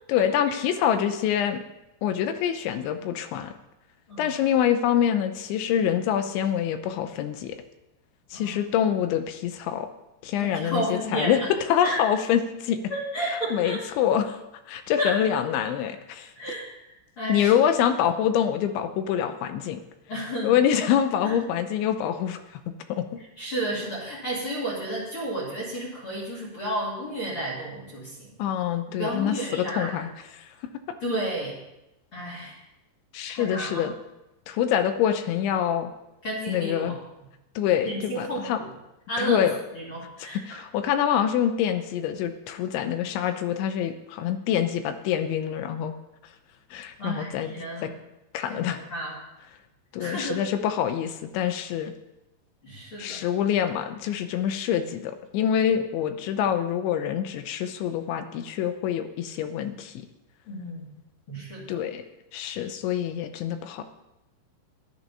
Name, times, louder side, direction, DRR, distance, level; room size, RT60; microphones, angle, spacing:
voice 1, 0.1-1.6 2.0-3.5 4.2-7.6 8.3-9.9 10.2-11.4 11.7-12.8 13.5-14.4 14.7-16.3 17.3-19.8 20.4-22.6 22.9-23.1 28.4-30.1 30.3-30.5 33.1-33.9 34.5-35.9 36.5-37.0 37.6-38.6 39.2-39.6 40.3-45.9 46.7-47.5 47.8-47.9 48.3-48.9 49.9-51.9 53.0-60.1 61.7-62.0 62.3-63.8, left 9 dB, 80° left, 9 dB, 3.0 m, -25 dB
voice 2, 10.4-11.3 11.8-12.0 12.9-13.8 15.0-15.2 16.4-16.6 17.2-17.5 20.1-20.6 21.2-21.3 23.4-28.3 29.0-29.9 31.0-31.6 32.1-32.6 33.3-33.9 36.2-37.0 37.9-38.7 39.1-39.4 39.7-40.6 47.0-47.9 48.5-49.1 50.0-50.4 52.6-53.2 60.5-60.8 61.3-61.8, right 1 dB, 35° left, -5 dB, 2.6 m, -32 dB
11.0 x 11.0 x 5.4 m, 0.93 s
omnidirectional pair, 5.5 m